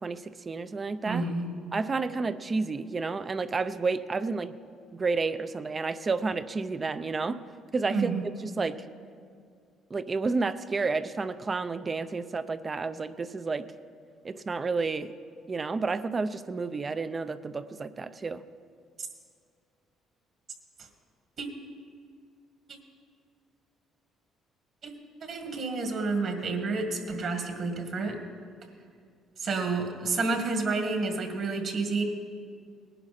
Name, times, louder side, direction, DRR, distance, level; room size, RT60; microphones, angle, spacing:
voice 1, 0.0-1.2 1.7-4.6 4.9-7.4 7.7-8.1 8.4-8.8 9.9-13.7 14.2-15.1 15.5-18.4, right 4 dB, 30° right, 12 dB, 0.6 m, -30 dB
voice 2, 1.1-1.5 7.9-8.2 21.4-21.5 24.8-24.9 25.2-28.2 29.4-32.0, right 3 dB, 55° right, 4 dB, 2.0 m, -29 dB
19.0 x 11.0 x 4.3 m, 2.3 s
cardioid pair, 85°, 0 cm